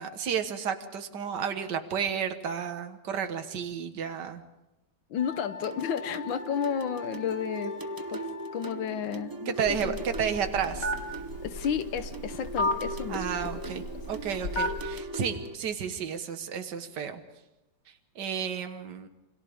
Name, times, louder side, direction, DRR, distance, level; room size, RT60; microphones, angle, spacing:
voice 1, 0.0-4.4 9.5-10.9 13.1-17.2 17.9-19.1, right 7 dB, 65° right, 7 dB, 2.0 m, -32 dB
voice 2, 5.1-7.7 8.1-8.2 8.5-9.5 9.8-9.9 11.4-13.7, left 8 dB, 90° left, 10 dB, 1.7 m, -32 dB
Wind instrument woodwind instrument, 5.1-8.9, left 4 dB, 15° left, 2.8 m, -43 dB
sound 1, 5.6-15.6, right 2 dB, 25° right, 0.4 m, -39 dB
Telephone, 9.7-15.0, left 1 dB, 70° left, 3.2 m, -34 dB
28.5 x 25.5 x 3.6 m, 0.98 s
omnidirectional pair, 2.0 m